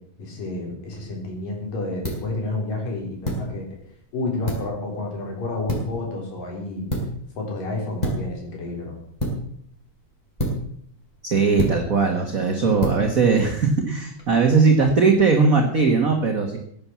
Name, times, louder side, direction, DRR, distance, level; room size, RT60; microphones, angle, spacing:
voice 1, 0.2-3.7 4.1-6.9 7.4-9.0, left 2 dB, 80° left, 0 dB, 5.7 m, -30 dB
sound 1, 0.8-14.3, equal, 10° left, 4.7 m, -32 dB
voice 2, 11.2-16.6, right 4 dB, 35° right, 3 dB, 1.5 m, -19 dB
16.5 x 9.9 x 7.3 m, 0.64 s
omnidirectional pair, 3.8 m